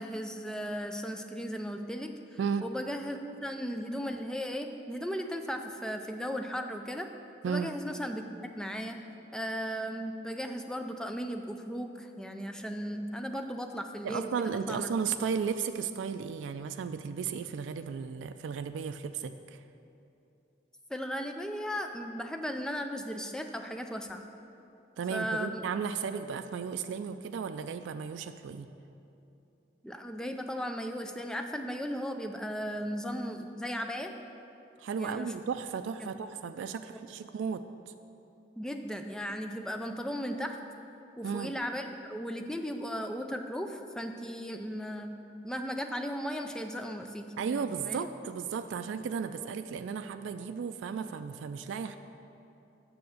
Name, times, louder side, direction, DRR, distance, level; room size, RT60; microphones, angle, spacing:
voice 1, 0.0-7.1 7.5-8.3 8.6-9.0 9.3-14.9 20.9-24.2 25.1-25.6 29.8-34.1 35.0-35.3 36.9-37.0 38.6-40.6 41.2-45.2 45.4-48.1, equal, 5° left, 5 dB, 0.4 m, -36 dB
voice 2, 14.0-19.6 25.0-28.7 34.8-37.9 41.2-41.5 47.4-52.0, right 6 dB, 90° right, 9 dB, 0.3 m, -34 dB
7.0 x 6.2 x 6.4 m, 2.8 s
head